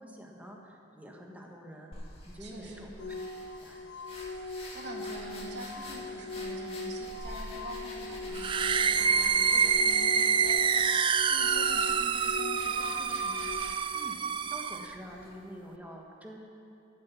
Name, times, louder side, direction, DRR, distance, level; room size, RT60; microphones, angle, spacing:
voice 1, 0.0-1.9 2.2-3.1 3.6-3.9 13.9-14.2 14.5-16.4, equal, 10° right, 0 dB, 1.5 m, -47 dB
sound 1, 1.9-15.3, left 1 dB, 35° left, 2.2 m, -47 dB
voice 2, 2.4-2.9 4.5-13.6, right 1 dB, 65° right, -1 dB, 2.1 m, -45 dB
sound 2, 3.0-13.6, left 2 dB, 65° left, 1.2 m, -40 dB
sound 3, 8.3-14.9, right 6 dB, 25° right, 0.3 m, -27 dB
13.5 x 7.6 x 7.3 m, 2.8 s
head